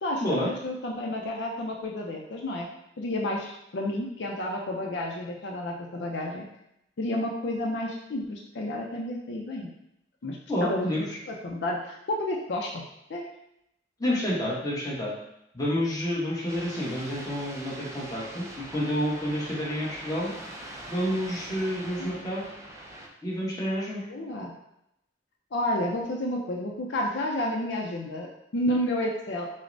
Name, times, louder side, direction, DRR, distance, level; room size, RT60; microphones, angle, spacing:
voice 1, 0.0-2.7 3.0-6.4 7.0-9.7 10.2-12.7 13.1-13.2 22.0-22.2 24.1-24.5 25.5-29.5, left 1 dB, 70° left, -1 dB, 0.5 m, -31 dB
voice 2, 10.5-11.2 14.0-15.1 15.5-20.3 20.9-22.5 23.2-24.0, equal, 20° left, -6 dB, 1.0 m, -29 dB
sound 1, 16.5-23.1, right 1 dB, 15° right, 0.5 m, -42 dB
6.2 x 2.1 x 2.6 m, 0.81 s
head